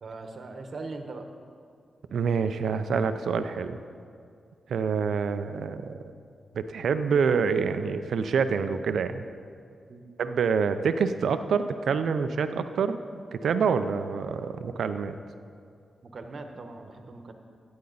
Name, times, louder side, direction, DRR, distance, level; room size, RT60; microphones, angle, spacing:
voice 1, 0.0-1.3 9.9-10.1 16.0-17.3, right 3 dB, 60° right, 5 dB, 1.1 m, -40 dB
voice 2, 2.1-3.8 4.7-6.0 6.5-9.2 10.2-13.0 13.3-15.1, right 6 dB, 80° right, 10 dB, 0.5 m, -26 dB
14.0 x 9.7 x 4.0 m, 2.3 s
cardioid pair, 70°, 0 cm